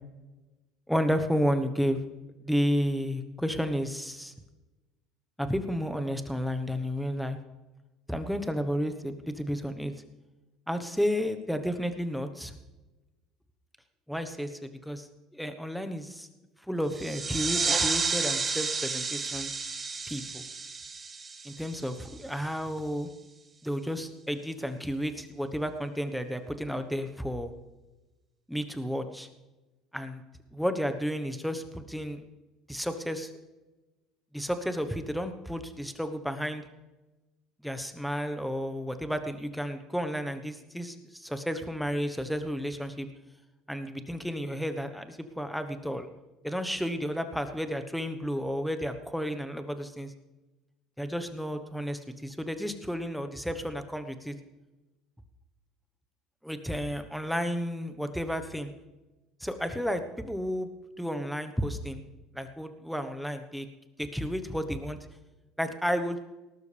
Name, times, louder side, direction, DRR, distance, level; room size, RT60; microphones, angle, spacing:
voice 1, 0.9-2.0 2.4-4.3 5.4-7.4 8.1-9.9 10.7-12.5 14.1-15.1 15.3-16.3 16.7-19.5 20.1-20.4 21.4-23.1 23.6-27.5 28.5-29.3 29.9-30.2 30.5-32.2 32.7-33.3 34.3-36.6 37.6-43.1 43.7-46.1 46.4-50.1 51.0-54.3 56.4-58.7 59.4-60.7 61.0-62.0 62.3-63.7 64.0-65.0 65.6-66.2, equal, ahead, 8 dB, 1.2 m, -32 dB
sound 1, 16.9-22.2, right 4 dB, 30° right, 1.5 m, -31 dB
19.0 x 12.0 x 3.4 m, 1.1 s
supercardioid pair, 95°, 0 cm